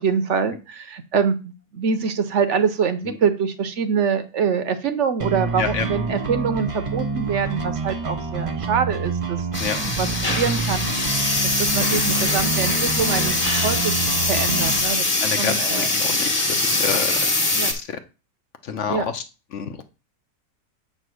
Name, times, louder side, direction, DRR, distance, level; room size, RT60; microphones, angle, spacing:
voice 1, 0.0-9.5 10.0-10.1 10.4-10.9 11.4-13.9 14.3-15.9 17.5-17.7 18.9-19.1, right 6 dB, 60° right, 10 dB, 0.9 m, -24 dB
sound 1, 5.2-14.8, right 4 dB, 30° right, 0.6 m, -28 dB
sound 2, 9.5-17.7, left 2 dB, 25° left, 1.2 m, -22 dB
voice 2, 15.2-17.2 17.7-17.8 18.6-19.2 19.5-19.8, left 6 dB, 60° left, 8 dB, 0.9 m, -28 dB
7.7 x 3.3 x 6.2 m, 0.31 s
omnidirectional pair, 1.6 m